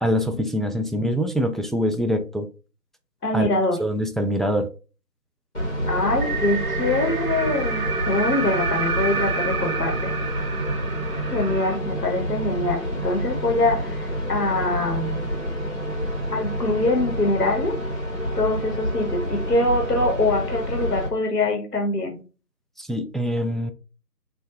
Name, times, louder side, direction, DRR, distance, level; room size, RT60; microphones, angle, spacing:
voice 1, 0.0-2.5 3.3-3.5 3.8-4.7 22.8-23.7, equal, ahead, 0.3 m, -24 dB
voice 2, 3.2-3.8 5.9-10.1 11.3-15.2 16.3-17.7 18.3-22.2, left 2 dB, 70° left, 1.1 m, -24 dB
sound 1, 5.5-21.1, equal, 45° left, 1.0 m, -28 dB
sound 2, 6.2-11.8, right 5 dB, 60° right, 0.6 m, -29 dB
3.6 x 2.2 x 3.0 m
figure-of-eight pair, 175°, 49 cm